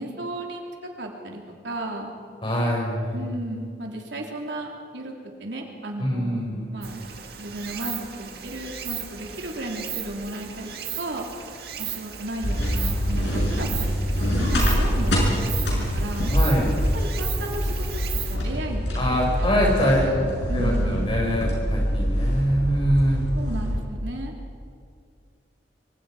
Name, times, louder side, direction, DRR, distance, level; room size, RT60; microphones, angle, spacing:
voice 1, 0.0-2.1 3.1-5.1 5.4-6.4 6.7-7.0 7.4-10.7 11.0-11.3 11.8-15.4 15.7-16.3 16.9-18.0 18.3-21.2 23.4-24.3, right 1 dB, 80° right, 1 dB, 3.5 m, -34 dB
voice 2, 2.4-3.2 6.0-6.7 16.3-16.8 19.0-20.3 20.5-23.2, equal, 30° left, -1 dB, 5.9 m, -24 dB
Stream, 6.8-18.4, right 9 dB, 60° right, 1.9 m, -36 dB
sound 1, 12.4-23.8, equal, 80° left, 7.1 m, -25 dB
25.5 x 24.5 x 5.1 m, 2.3 s
head